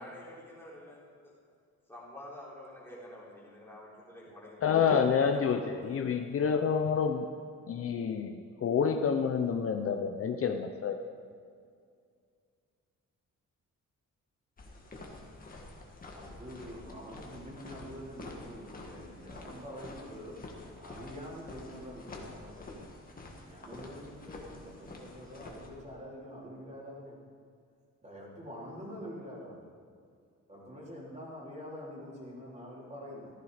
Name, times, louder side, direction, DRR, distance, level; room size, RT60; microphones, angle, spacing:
voice 1, 0.0-1.3 1.9-4.6 5.3-5.8, left 1 dB, 10° left, -6 dB, 3.6 m, -48 dB
voice 2, 4.6-7.3 7.7-11.2, left 6 dB, 50° left, 6 dB, 0.7 m, -28 dB
sound 1, 14.6-25.7, left 2 dB, 30° left, 1.9 m, -48 dB
voice 3, 16.1-22.8 23.4-27.2 28.0-29.6 30.5-33.3, equal, 25° right, -5 dB, 3.5 m, -46 dB
15.0 x 15.0 x 5.0 m, 2.2 s
wide cardioid pair, 175°, 30 cm